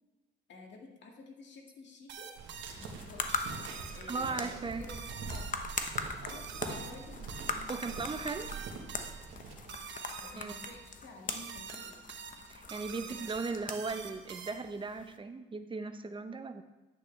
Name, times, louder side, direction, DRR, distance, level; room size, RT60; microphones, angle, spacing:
voice 1, 0.5-2.3 2.7-3.3 3.9-5.6 6.2-8.7 10.2-12.1 13.0-14.2, left 3 dB, 65° left, 1 dB, 2.0 m, -52 dB
sound 1, 2.1-14.9, right 6 dB, 65° right, 1.0 m, -46 dB
sound 2, 2.4-9.8, right 4 dB, 85° right, 1.4 m, -44 dB
sound 3, 2.7-15.2, left 4 dB, 40° left, 1.0 m, -42 dB
voice 2, 4.1-4.8 7.7-8.5 10.4-10.6 12.5-16.6, right 4 dB, 25° right, 9 dB, 0.8 m, -37 dB
11.0 x 8.6 x 3.3 m, 1.1 s
cardioid pair, 90°, 20 cm